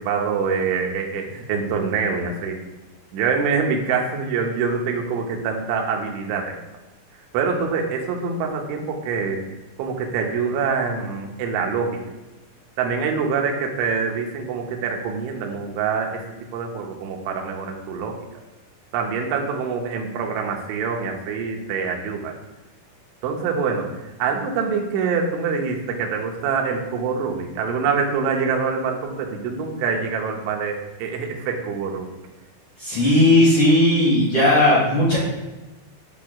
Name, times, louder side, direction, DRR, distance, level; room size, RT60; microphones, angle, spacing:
voice 1, 0.0-2.6 3.1-6.6 7.3-9.4 9.8-12.0 12.8-16.3 16.5-18.2 18.9-22.3 23.2-32.1, right 5 dB, 85° right, 1 dB, 3.1 m, -25 dB
voice 2, 32.8-35.2, left 1 dB, 50° left, -8 dB, 1.9 m, -16 dB
9.1 x 4.7 x 2.3 m, 1.1 s
omnidirectional pair, 5.4 m